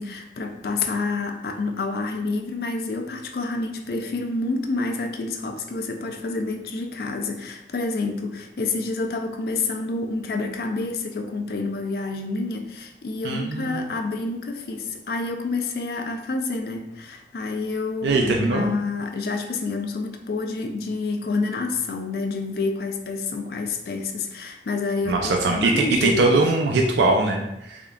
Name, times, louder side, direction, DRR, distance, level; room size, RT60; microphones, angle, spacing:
voice 1, 0.0-26.5, left 3 dB, 55° left, 5 dB, 0.4 m, -28 dB
voice 2, 13.2-13.8 18.0-18.7 25.1-27.8, right 2 dB, 85° right, 2 dB, 0.4 m, -21 dB
3.6 x 3.4 x 2.2 m, 0.88 s
head